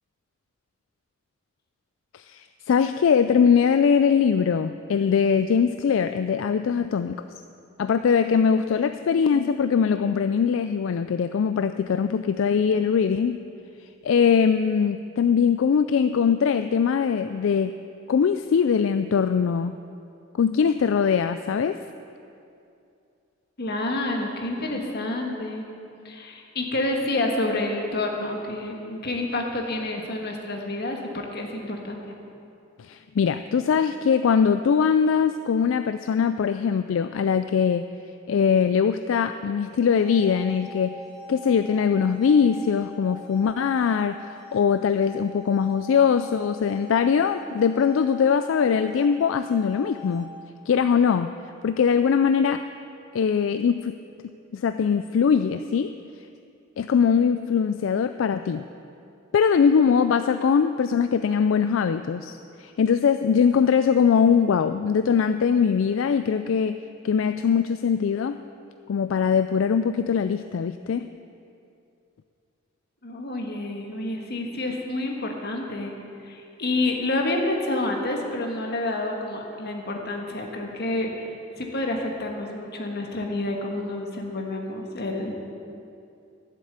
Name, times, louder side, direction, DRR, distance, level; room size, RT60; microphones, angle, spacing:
voice 1, 2.1-7.2 7.8-13.4 14.0-17.7 18.1-19.8 20.4-21.8 32.8-37.8 38.3-40.9 41.3-50.3 50.7-51.3 51.6-52.6 53.1-53.9 54.5-55.9 56.8-58.6 59.3-66.8 67.0-68.4 68.9-71.1, left 6 dB, 75° left, 10 dB, 0.4 m, -21 dB
voice 2, 23.6-25.7 26.0-32.2 73.0-75.9 76.2-85.4, left 2 dB, 55° left, 1 dB, 1.6 m, -29 dB
sound 1, 39.7-50.7, left 2 dB, 35° left, 2.6 m, -44 dB
12.0 x 7.6 x 8.0 m, 2.6 s
head